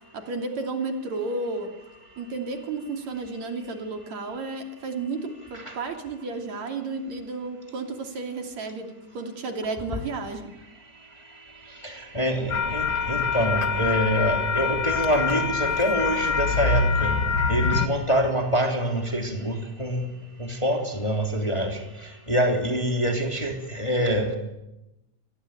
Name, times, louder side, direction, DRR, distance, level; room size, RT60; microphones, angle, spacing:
voice 1, 0.1-1.7 2.2-10.5, right 3 dB, 65° right, 4 dB, 4.0 m, -32 dB
voice 2, 11.8-17.1 17.5-20.1 20.4-21.8 22.3-24.3, equal, 10° left, 3 dB, 2.9 m, -25 dB
sound 1, 12.5-17.9, left 5 dB, 45° left, 1.6 m, -25 dB
28.0 x 19.5 x 9.1 m, 0.94 s
omnidirectional pair, 3.4 m